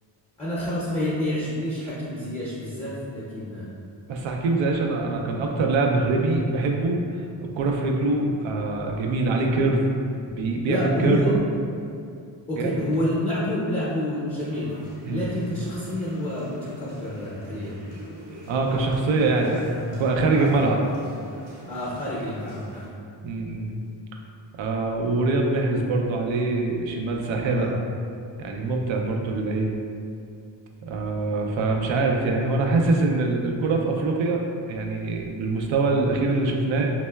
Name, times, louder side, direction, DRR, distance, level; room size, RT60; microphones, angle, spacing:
voice 1, 0.4-3.7 10.7-11.3 12.5-14.7 15.1-17.8 20.3-20.5 20.9-21.1 21.7-22.8 27.4-27.7 28.9-29.1, left 1 dB, 15° left, -8 dB, 0.6 m, -28 dB
voice 2, 4.1-7.0 7.4-9.8 10.3-11.3 12.6-12.8 15.0-15.2 18.5-20.8 23.2-23.8 24.6-27.7 28.4-29.8 30.8-34.4 34.7-36.9, right 3 dB, 80° right, 1 dB, 0.5 m, -24 dB
sound 1, 14.4-22.9, equal, 55° right, 0.8 m, -44 dB
4.2 x 2.0 x 2.2 m, 2.4 s
cardioid pair, 90°, 46 cm